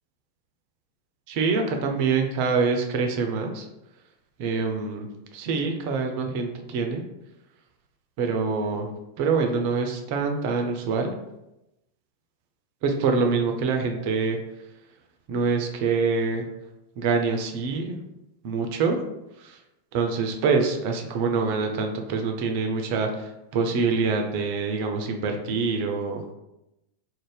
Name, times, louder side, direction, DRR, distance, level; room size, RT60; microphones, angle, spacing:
voice 1, 1.3-3.7 4.4-7.0 8.2-8.9 9.2-11.1 12.8-14.4 15.3-16.5 17.0-18.0 18.4-19.0 19.4-19.5 19.9-26.2, right 4 dB, 45° right, 4 dB, 0.4 m, -25 dB
2.5 x 2.0 x 3.2 m, 0.91 s
figure-of-eight pair, 90°, 0 cm